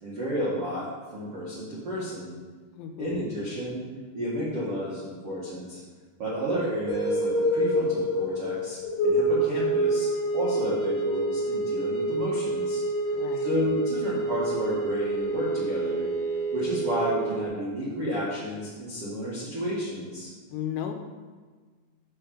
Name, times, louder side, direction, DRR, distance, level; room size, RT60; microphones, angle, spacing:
voice 1, 0.0-2.4 3.0-3.8 4.1-5.8 6.2-12.8 13.3-16.1 16.5-20.3, equal, 70° right, -9 dB, 1.3 m, -32 dB
voice 2, 2.8-3.3 13.1-13.5 20.5-20.9, left 9 dB, 85° left, 5 dB, 3.0 m, -34 dB
sound 1, 6.9-17.5, right 1 dB, 60° left, 2.4 m, -27 dB
8.4 x 3.8 x 6.9 m, 1.4 s
omnidirectional pair, 5.6 m